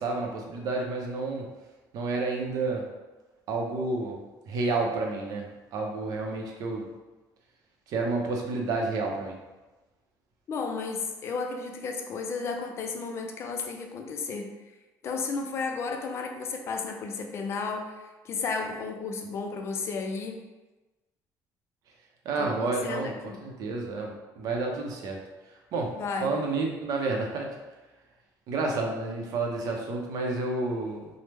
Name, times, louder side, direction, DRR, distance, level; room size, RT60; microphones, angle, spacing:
voice 1, 0.0-1.5 1.9-2.8 3.5-4.2 4.5-6.9 7.9-9.4 22.2-23.1 23.4-25.2 25.7-25.9 26.2-27.6 28.5-31.1, right 3 dB, 60° right, 1 dB, 0.5 m, -30 dB
voice 2, 10.5-14.5 15.0-20.4 22.4-23.4 25.9-26.4, left 4 dB, 40° left, 3 dB, 0.3 m, -33 dB
3.0 x 2.0 x 3.3 m, 1.1 s
cardioid pair, 160°, 7 cm